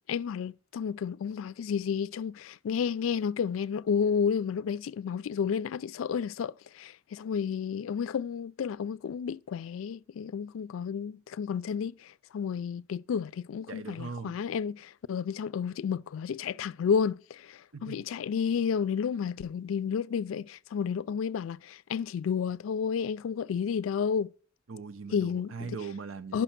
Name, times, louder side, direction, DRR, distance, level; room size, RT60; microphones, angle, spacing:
voice 1, 0.1-24.3 25.1-25.8 26.3-26.4, left 7 dB, 90° left, 0.3 m, -31 dB
voice 2, 13.7-14.4 17.7-18.0 24.7-26.4, right 5 dB, 90° right, 0.7 m, -40 dB
10.0 x 5.8 x 5.8 m
head